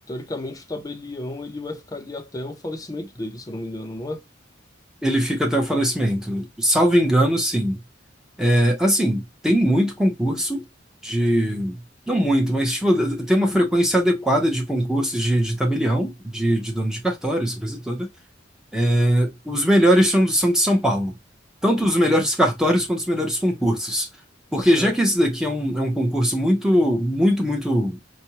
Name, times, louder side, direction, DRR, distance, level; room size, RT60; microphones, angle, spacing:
voice 1, 0.1-4.2 24.6-25.0, left 1 dB, 20° left, 0.6 m, -33 dB
voice 2, 5.0-7.8 8.4-10.7 11.0-11.8 12.1-18.1 18.7-21.1 21.6-24.1 24.5-28.0, equal, 5° right, 0.9 m, -20 dB
4.3 x 2.3 x 2.9 m
head